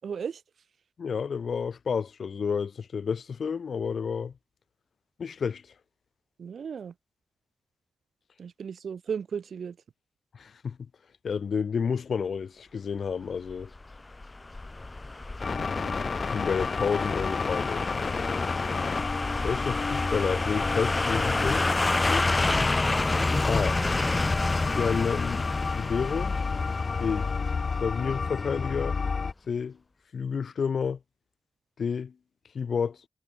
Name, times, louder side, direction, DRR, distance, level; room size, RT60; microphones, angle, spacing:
voice 1, 0.0-0.4 6.4-6.9 8.4-9.8 15.5-16.0, right 7 dB, 85° right, 6.2 m, -36 dB
voice 2, 1.0-4.3 5.2-5.6 10.3-10.8 11.2-13.7 16.3-17.8 19.4-21.7 22.0-22.3 23.4-23.8 24.8-25.5 25.7-26.3 27.0-27.3 27.8-29.0 29.5-29.8 30.1-31.0 31.8-32.1 32.5-33.0, left 6 dB, 80° left, 2.2 m, -30 dB
sound 1, 13.5-28.4 28.7-28.8, left 2 dB, 30° left, 2.3 m, -29 dB
sound 2, 15.4-29.3, left 5 dB, 60° left, 1.4 m, -31 dB
cardioid pair, 70°, 0 cm